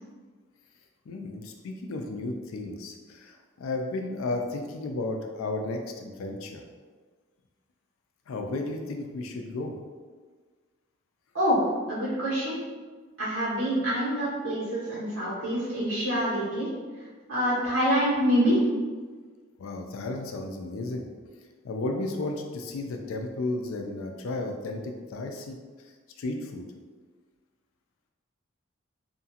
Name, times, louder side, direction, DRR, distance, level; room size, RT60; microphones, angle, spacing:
voice 1, 1.1-6.6 8.3-9.8 19.6-21.1 21.6-25.6 26.2-26.6, left 2 dB, 85° left, 3 dB, 0.4 m, -33 dB
voice 2, 11.9-12.6 13.2-16.7 17.3-18.6, equal, 75° right, -9 dB, 1.4 m, -26 dB
2.8 x 2.4 x 2.7 m, 1.5 s
head